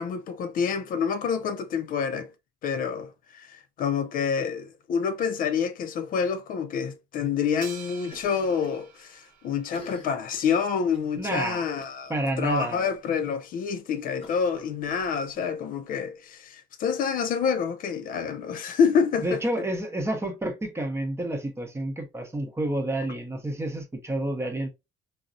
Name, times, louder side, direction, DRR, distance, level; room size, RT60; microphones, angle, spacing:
voice 1, 0.0-2.3 2.6-19.4, left 6 dB, 55° left, 0.4 m, -27 dB
sound 1, 7.6-10.1, right 7 dB, 55° right, 0.8 m, -47 dB
Cough, 8.0-8.8 9.1-9.2 9.6-11.2 11.8-12.1 12.4-12.5 12.9-13.0 14.2-15.4, left 2 dB, 35° left, 1.1 m, -48 dB
voice 2, 11.2-11.6 12.1-12.9 19.2-24.7, right 1 dB, 15° right, 0.7 m, -29 dB
3.7 x 2.0 x 2.5 m
cardioid pair, 110°, 17 cm